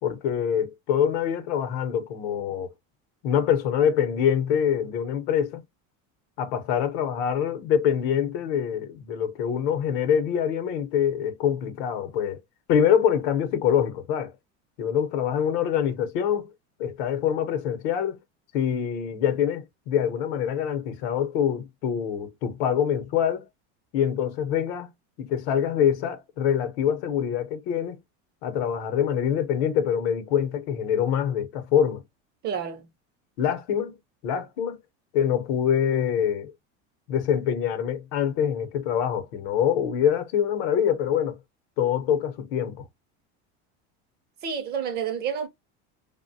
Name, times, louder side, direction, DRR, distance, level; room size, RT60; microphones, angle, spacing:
voice 1, 0.0-2.7 3.2-5.6 6.4-12.4 12.7-14.3 14.8-16.5 16.8-18.2 18.5-23.4 23.9-24.9 25.2-28.0 28.4-32.0 33.4-34.0 34.2-34.8 35.1-36.5 37.1-41.4 41.8-42.8, left 8 dB, 70° left, 0.7 m, -25 dB
voice 2, 32.4-32.8 44.4-45.5, right 7 dB, 30° right, 0.4 m, -29 dB
3.2 x 2.1 x 2.6 m
cardioid pair, 160°, 33 cm